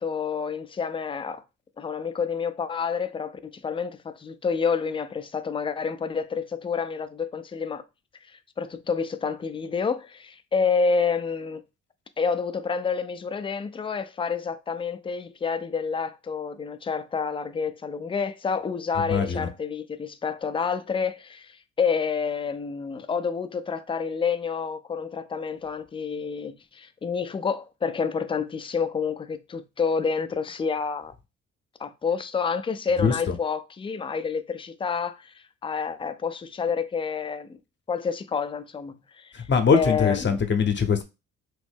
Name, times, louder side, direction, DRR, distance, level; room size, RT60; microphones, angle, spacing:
voice 1, 0.0-1.4 1.8-7.8 8.3-11.6 12.2-31.1 31.8-37.6 37.9-39.5 39.7-40.4, left 5 dB, 20° left, 0.3 m, -29 dB
voice 2, 18.9-19.5 33.0-33.4 39.3-41.0, left 6 dB, 40° left, 0.7 m, -22 dB
3.0 x 2.6 x 3.5 m
cardioid pair, 90°, 30 cm